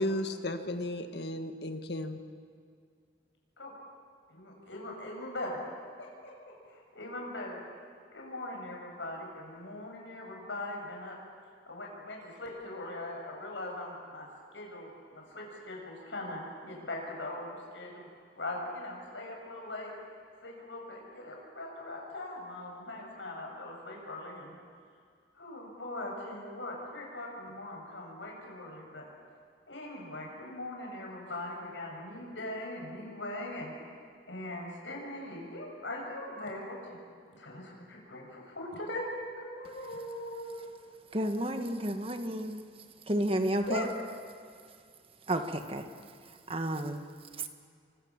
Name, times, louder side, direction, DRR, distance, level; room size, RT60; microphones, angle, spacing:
voice 1, 0.0-2.2, left 1 dB, 65° left, 7 dB, 1.8 m, -34 dB
voice 2, 4.3-5.6 6.0-7.6 8.1-11.2 11.7-14.3 14.5-18.1 18.4-19.9 20.4-24.6 25.4-29.0 29.7-33.7 34.3-37.0 37.3-39.1 39.4-40.7 43.6-43.9, left 1 dB, 90° left, -1 dB, 7.0 m, -41 dB
voice 3, 41.1-42.6 43.1-43.9 45.3-45.9 46.5-47.1 47.4-47.5, right 1 dB, 30° right, 7 dB, 1.6 m, -31 dB
29.0 x 24.0 x 7.4 m, 2.2 s
head